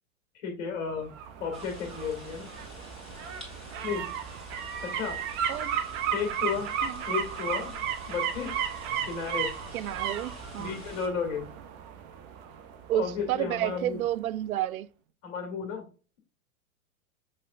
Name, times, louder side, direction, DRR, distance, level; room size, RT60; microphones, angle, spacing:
voice 1, 0.3-1.1 1.4-2.5 3.8-4.1 4.8-5.2 6.1-6.7 7.0-7.7 8.1-8.6 9.0-9.5 10.6-11.5 12.9-14.0 15.2-15.8, left 6 dB, 50° left, 1.5 m, -33 dB
sound 1, 0.9-13.7 14.1-14.2, right 8 dB, 30° right, 0.6 m, -35 dB
sound 2, 1.5-11.1, left 1 dB, ahead, 2.4 m, -47 dB
voice 2, 5.5-5.8 6.8-7.0 9.7-10.8 12.9-14.9, right 13 dB, 75° right, 0.5 m, -31 dB
5.8 x 3.3 x 2.4 m
hypercardioid pair, 120°, 42 cm